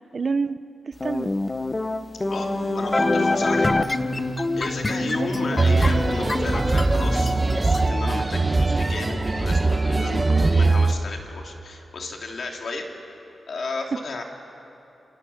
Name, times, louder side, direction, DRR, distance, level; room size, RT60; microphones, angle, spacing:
voice 1, 0.1-0.6 0.9-1.3 5.0-5.6 10.1-10.5, right 4 dB, 50° right, 13 dB, 0.7 m, -28 dB
sound 1, 1.0-7.8, left 2 dB, 25° left, 0.8 m, -26 dB
sound 2, 2.2-7.6, equal, 5° left, 5.2 m, -33 dB
voice 2, 2.7-3.8 4.6-10.2 10.5-12.9 13.5-14.2, left 3 dB, 60° left, 2 dB, 3.1 m, -33 dB
sound 3, 5.6-10.9, right 3 dB, 25° right, 1.3 m, -21 dB
28.0 x 26.5 x 7.2 m, 2.9 s
wide cardioid pair, 115°, 0 cm